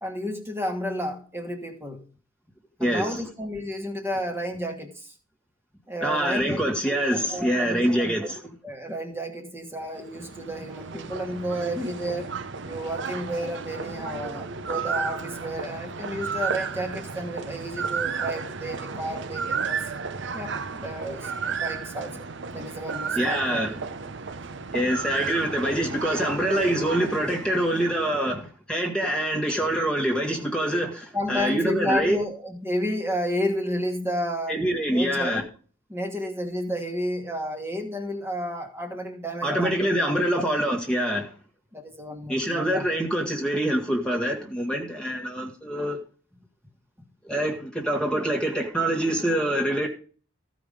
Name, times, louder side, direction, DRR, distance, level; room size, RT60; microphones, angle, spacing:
voice 1, 0.0-2.0 2.8-5.1 5.9-12.3 12.6-19.8 20.3-22.3 22.5-23.6 25.4-25.6 31.1-34.6 34.9-35.5 35.9-40.1 41.7-42.9, equal, 10° right, 1.4 m, -32 dB
voice 2, 2.8-3.2 6.0-8.4 23.1-23.7 24.7-32.2 34.5-35.4 39.4-41.3 42.3-46.0 47.2-49.9, right 1 dB, 5° left, 1.4 m, -25 dB
sound 1, 9.8-28.2, right 5 dB, 60° right, 0.7 m, -33 dB
15.0 x 5.0 x 5.3 m
head